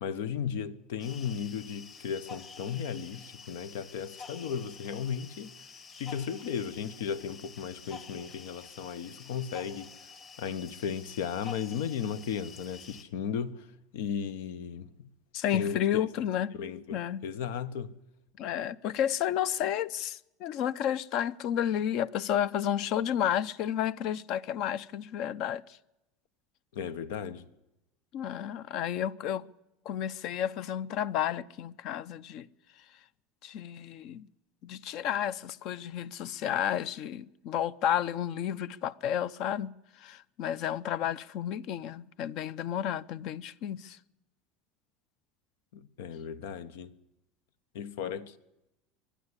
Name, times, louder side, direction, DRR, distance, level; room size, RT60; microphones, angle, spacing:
voice 1, 0.0-5.5 6.0-9.9 10.4-13.7 13.9-15.1 15.5-16.0 16.6-18.0 26.7-27.5 45.7-46.9 47.7-48.4, left 7 dB, 90° left, 1.2 m, -35 dB
sound 1, 1.0-13.0, left 5 dB, 30° left, 1.5 m, -49 dB
voice 2, 15.3-16.5 16.9-17.2 18.4-25.8 28.1-29.5 29.8-32.5 33.4-34.3 34.6-44.0, left 10 dB, 50° left, 0.6 m, -31 dB
22.0 x 12.0 x 9.8 m
cardioid pair, 160°, 0 cm